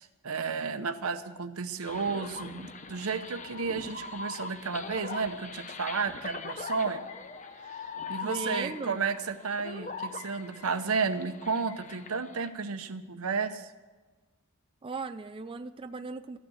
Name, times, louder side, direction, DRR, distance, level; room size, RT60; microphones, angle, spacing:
voice 1, 0.0-7.0 7.7-7.8 8.1-13.7, right 5 dB, 85° right, 11 dB, 0.8 m, -32 dB
sound 1, 1.8-12.5, left 4 dB, 35° left, 0.8 m, -41 dB
voice 2, 8.2-9.0 14.8-16.4, right 3 dB, 25° right, 8 dB, 0.4 m, -37 dB
13.5 x 9.1 x 7.8 m, 1.3 s
head